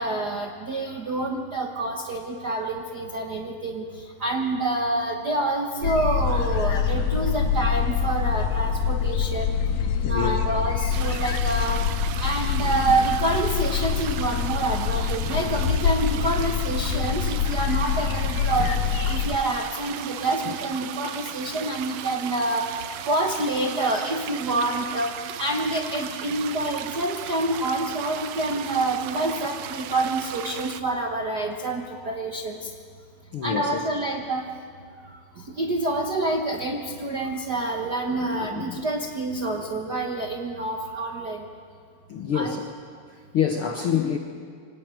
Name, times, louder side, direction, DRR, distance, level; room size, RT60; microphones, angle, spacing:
voice 1, 0.0-3.8 4.2-9.5 10.0-11.8 12.2-22.7 23.1-32.7 33.4-34.4 35.5-41.4 42.3-42.6, right 2 dB, 60° right, 1 dB, 1.0 m, -27 dB
sound 1, 5.8-19.4, left 7 dB, 85° left, 3.1 m, -25 dB
voice 2, 10.0-10.4 20.5-20.6 31.9-32.0 33.3-33.9 38.5-38.8 42.1-42.7 43.3-44.2, left 8 dB, 70° left, 5 dB, 1.3 m, -27 dB
sound 2, 10.9-30.8, right 11 dB, 75° right, 1.5 m, -37 dB
24.0 x 18.5 x 9.1 m, 2.1 s
omnidirectional pair, 3.9 m